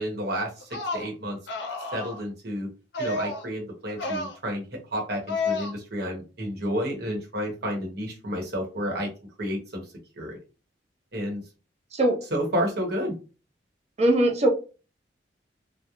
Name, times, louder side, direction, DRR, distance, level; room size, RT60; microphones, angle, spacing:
voice 1, 0.0-1.4 1.9-2.7 3.0-9.1 9.4-9.8 10.2-10.4 11.1-11.4 12.3-13.1, equal, 60° right, 1 dB, 0.9 m, -30 dB
sound 1, 0.6-1.1 1.5-2.2 2.9-3.5 3.9-4.4 5.3-5.7, left 3 dB, 65° left, 0.5 m, -30 dB
voice 2, 14.0-14.5, right 1 dB, 35° right, 1 dB, 0.6 m, -20 dB
2.3 x 2.0 x 2.8 m, 0.33 s
head